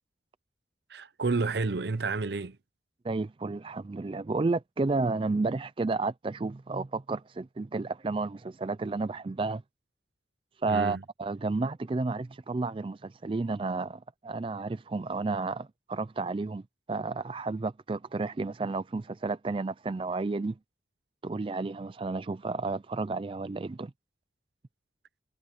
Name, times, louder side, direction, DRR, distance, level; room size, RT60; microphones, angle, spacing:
voice 1, 0.9-2.6 10.7-11.0, right 3 dB, 65° right, 0.7 m, -30 dB
voice 2, 3.0-9.6 10.6-16.6 16.9-20.6 21.2-23.9, right 3 dB, 30° right, 0.3 m, -31 dB
head